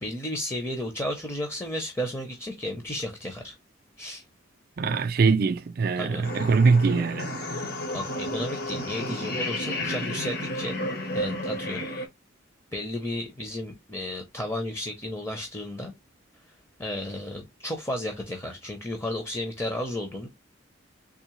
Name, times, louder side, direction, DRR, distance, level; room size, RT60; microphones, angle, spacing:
voice 1, 0.0-3.6 4.0-4.2 6.0-6.2 7.9-10.8 11.1-11.9 12.7-15.9 16.8-20.3, left 1 dB, 15° left, 0.5 m, -33 dB
voice 2, 4.8-7.3, right 4 dB, 45° right, 0.4 m, -22 dB
sound 1, 6.2-12.1, left 1 dB, 50° left, 0.8 m, -32 dB
3.6 x 3.1 x 3.0 m
head